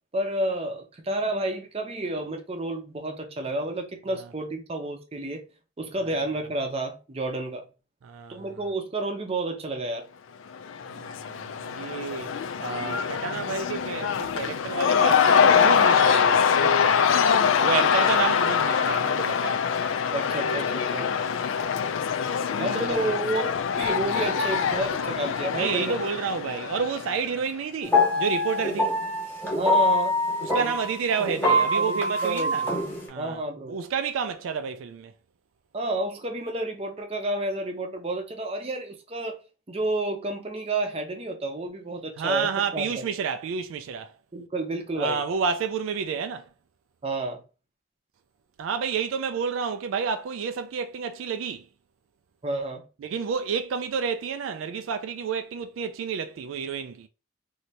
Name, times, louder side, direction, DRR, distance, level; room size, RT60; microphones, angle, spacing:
voice 1, 0.1-5.4 5.8-7.6 8.3-10.1 17.8-17.9 20.1-21.1 22.6-23.5 23.8-26.0 29.6-30.2 30.6-30.7 31.7-32.8 33.2-33.8 35.7-39.4 39.7-42.8 44.3-45.2 47.0-47.4 52.4-52.9, right 2 dB, 30° right, 0.6 m, -30 dB
voice 2, 8.0-8.6 10.9-12.3 12.6-17.1 17.6-19.6 22.6-23.1 25.6-28.9 30.4-32.6 33.1-33.4 33.7-35.1 42.2-44.1 45.0-46.5 48.6-51.6 53.0-57.1, right 6 dB, 75° right, 0.3 m, -30 dB
Cheering / Crowd, 10.5-27.4, left 7 dB, 70° left, 0.3 m, -24 dB
sound 1, 27.8-33.0, left 1 dB, 10° left, 1.1 m, -24 dB
3.2 x 2.7 x 2.8 m
head